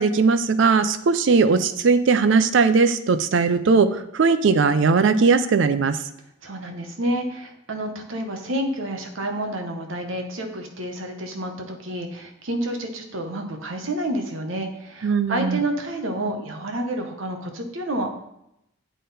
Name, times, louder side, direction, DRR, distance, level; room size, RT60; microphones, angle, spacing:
voice 1, 0.0-6.0 15.0-15.6, right 4 dB, 70° right, 12 dB, 0.4 m, -19 dB
voice 2, 6.4-18.1, right 1 dB, 85° right, 4 dB, 1.0 m, -29 dB
8.3 x 3.8 x 4.1 m, 0.80 s
head